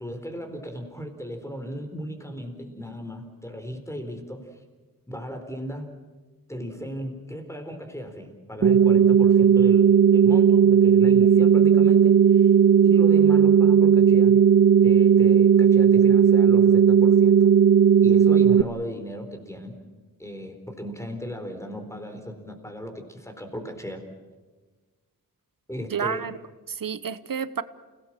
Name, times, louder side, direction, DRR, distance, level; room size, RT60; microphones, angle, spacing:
voice 1, 0.0-4.6 5.1-5.9 6.5-12.5 12.8-14.4 14.8-17.5 18.0-19.8 20.2-24.0 25.7-26.2, equal, 10° left, 5 dB, 4.2 m, -36 dB
sound 1, 8.6-18.6, right 8 dB, 40° right, 0.7 m, -16 dB
voice 2, 25.9-26.4 26.7-27.6, right 7 dB, 70° right, 14 dB, 1.0 m, -30 dB
29.0 x 18.0 x 7.5 m, 1.3 s
wide cardioid pair, 75°, 35 cm